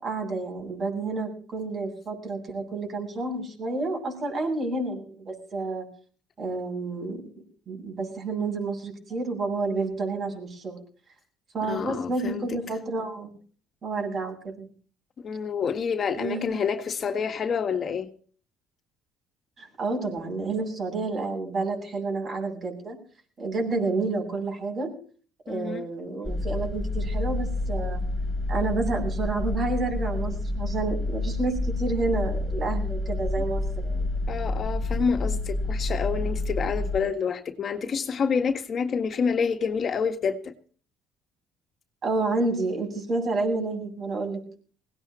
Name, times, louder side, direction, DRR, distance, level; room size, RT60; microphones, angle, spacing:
voice 1, 0.0-5.8 6.4-7.2 7.7-10.8 11.5-13.3 13.8-14.7 16.2-16.6 19.6-23.0 23.4-24.9 25.4-28.0 28.5-34.1 42.0-44.4, right 3 dB, 45° right, 7.8 m, -30 dB
voice 2, 11.6-12.4 15.2-18.1 25.5-25.9 34.3-40.5, left 6 dB, 45° left, 1.6 m, -28 dB
sound 1, 26.2-37.0, left 2 dB, 10° left, 6.2 m, -29 dB
21.0 x 17.5 x 3.0 m
supercardioid pair, 80°, 0 cm